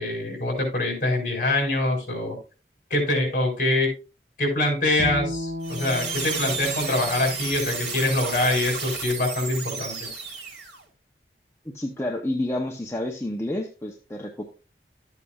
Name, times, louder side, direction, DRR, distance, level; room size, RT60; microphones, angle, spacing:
voice 1, 0.0-2.4 2.9-3.9 4.4-10.1, left 2 dB, 45° left, 0 dB, 4.4 m, -24 dB
Bowed string instrument, 5.0-8.3, left 2 dB, 55° right, 1.6 m, -35 dB
sound 1, 5.6-10.8, right 5 dB, 90° right, 2.6 m, -32 dB
voice 2, 11.7-14.4, left 1 dB, 15° left, 0 dB, 0.8 m, -29 dB
12.5 x 8.3 x 2.4 m, 0.32 s
head